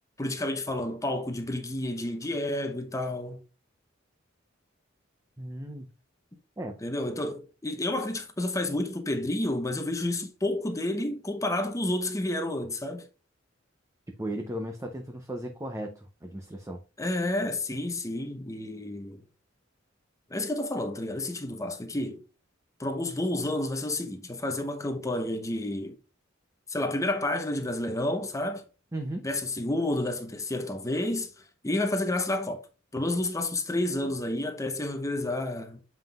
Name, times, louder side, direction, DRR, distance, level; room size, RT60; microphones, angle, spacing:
voice 1, 0.2-3.4 6.8-13.0 17.0-19.2 20.3-22.2 22.8-26.0 26.7-28.6 29.2-31.3 31.6-32.6 32.9-35.8, left 1 dB, 15° left, 0.9 m, -30 dB
voice 2, 5.4-5.9 6.6-6.8 14.2-16.8 28.9-29.3, right 1 dB, 15° right, 0.7 m, -36 dB
7.6 x 5.5 x 2.4 m
head